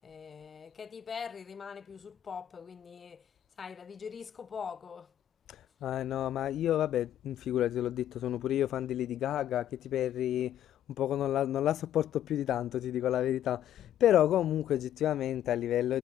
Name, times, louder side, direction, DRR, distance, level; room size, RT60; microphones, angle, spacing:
voice 1, 0.0-3.3 3.6-5.1, left 6 dB, 45° left, 6.1 m, -43 dB
voice 2, 5.5-10.7 11.0-16.0, left 12 dB, 75° left, 0.5 m, -30 dB
cardioid pair, 90°, 0 cm